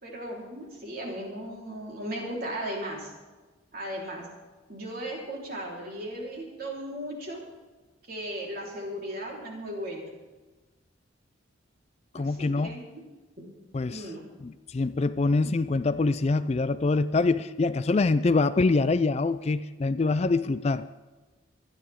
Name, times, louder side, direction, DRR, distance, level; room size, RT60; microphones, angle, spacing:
voice 1, 0.0-3.1 3.7-4.3 4.7-7.4 8.1-10.1 12.2-13.2 13.9-14.3, right 1 dB, 50° right, 4.0 m, -36 dB
voice 2, 12.1-12.8 13.7-14.0 14.4-20.9, left 3 dB, 30° left, 0.4 m, -25 dB
24.0 x 11.0 x 3.7 m
head